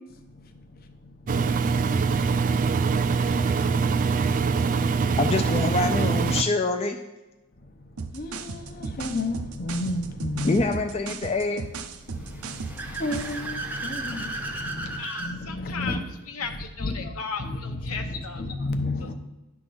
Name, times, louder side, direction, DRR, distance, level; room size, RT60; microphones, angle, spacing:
Engine, 1.3-6.4, right 5 dB, 35° right, 0.3 m, -23 dB
voice 1, 5.2-7.0 10.4-11.7, left 3 dB, 30° left, 4 dB, 0.4 m, -25 dB
sound 1, 8.0-13.5, right 4 dB, 70° right, 0.6 m, -36 dB
voice 2, 8.1-10.7 12.1-16.0 16.8-17.1 17.4-19.1, left 2 dB, 45° left, 6 dB, 0.8 m, -32 dB
Car / Accelerating revving vroom, 12.1-15.4, right 3 dB, 10° right, 0.7 m, -35 dB
voice 3, 15.0-18.4 19.0-19.1, left 5 dB, 75° left, 5 dB, 0.9 m, -36 dB
10.5 x 3.7 x 6.2 m, 1.1 s
head